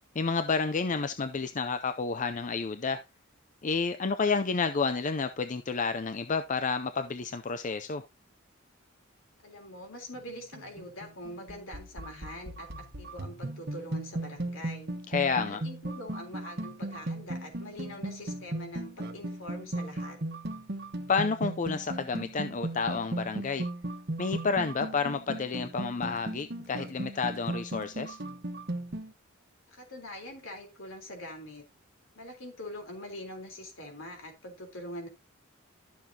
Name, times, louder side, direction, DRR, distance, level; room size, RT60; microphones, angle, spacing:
voice 1, 0.2-3.0 3.6-8.0 15.1-15.6 21.1-23.7 24.2-28.2, left 4 dB, 40° left, 0.5 m, -30 dB
voice 2, 9.4-12.7 13.0-14.9 15.4-20.2 29.7-31.6 32.2-35.1, left 1 dB, 70° left, 3.8 m, -43 dB
sound 1, 10.2-29.1, right 1 dB, 50° right, 1.3 m, -37 dB
12.5 x 7.2 x 2.8 m
head